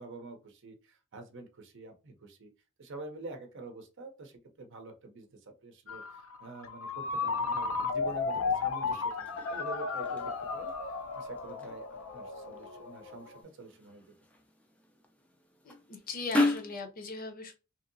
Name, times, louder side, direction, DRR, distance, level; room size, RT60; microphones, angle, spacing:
voice 1, 0.0-2.5 2.8-14.1, right 3 dB, 60° right, 5 dB, 0.7 m, -47 dB
Ringtone, 5.9-13.4, left 4 dB, 90° left, 0.6 m, -34 dB
sound 1, 8.1-16.8, left 2 dB, 5° left, 0.4 m, -37 dB
voice 2, 15.6-17.5, left 4 dB, 45° left, 6 dB, 0.7 m, -39 dB
2.9 x 2.7 x 2.6 m, 0.31 s
head